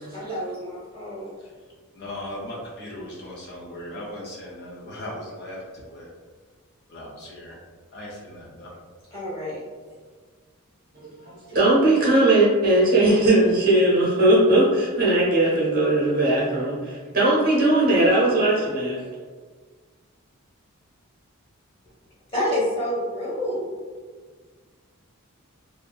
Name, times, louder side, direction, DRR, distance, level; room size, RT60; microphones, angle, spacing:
voice 1, 0.1-1.3 9.1-9.6 22.3-23.7, left 1 dB, 25° left, -8 dB, 1.0 m, -28 dB
voice 2, 1.9-6.1 6.9-7.6 7.9-8.7, left 1 dB, 45° left, -4 dB, 0.4 m, -38 dB
voice 3, 11.5-19.0, right 1 dB, 40° right, -5 dB, 0.7 m, -19 dB
2.6 x 2.4 x 2.2 m, 1.5 s
head